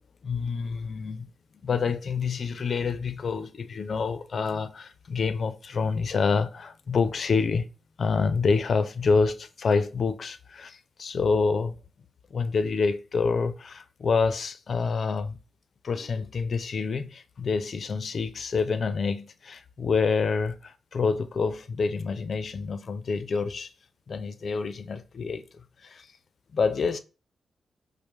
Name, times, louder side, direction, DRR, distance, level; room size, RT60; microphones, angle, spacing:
voice 1, 0.2-1.3 1.6-7.7 8.0-11.8 12.3-15.4 15.8-23.7 24.1-25.4 25.8-26.1 26.5-27.0, left 4 dB, 60° left, 0.4 m, -27 dB
5.1 x 2.0 x 3.2 m
cardioid pair, 75°, 0 cm